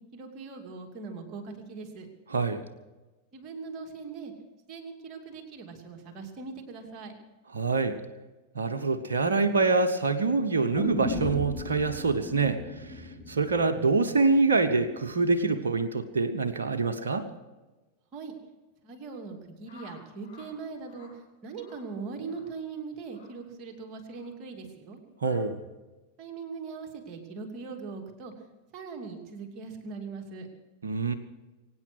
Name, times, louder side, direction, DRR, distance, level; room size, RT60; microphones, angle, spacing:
voice 1, 0.1-2.1 3.3-4.3 4.7-7.1 18.1-18.3 18.8-21.1 21.4-25.0 26.2-28.3 28.7-30.5, right 4 dB, 35° right, 2 dB, 2.6 m, -40 dB
voice 2, 2.3-2.6 7.5-8.0 8.5-12.9 13.3-17.3 25.2-25.6 30.8-31.1, right 3 dB, 65° right, 6 dB, 1.0 m, -25 dB
sound 1, 10.7-14.8 15.1-15.2, left 1 dB, 5° left, 3.2 m, -37 dB
sound 2, 19.6-20.5 20.8-21.1 21.5-21.8 22.2-22.5 23.1-23.3 24.0-24.3 25.2-25.4, left 4 dB, 70° left, 4.9 m, -53 dB
23.0 x 9.5 x 6.2 m, 1.1 s
figure-of-eight pair, 90°, 0 cm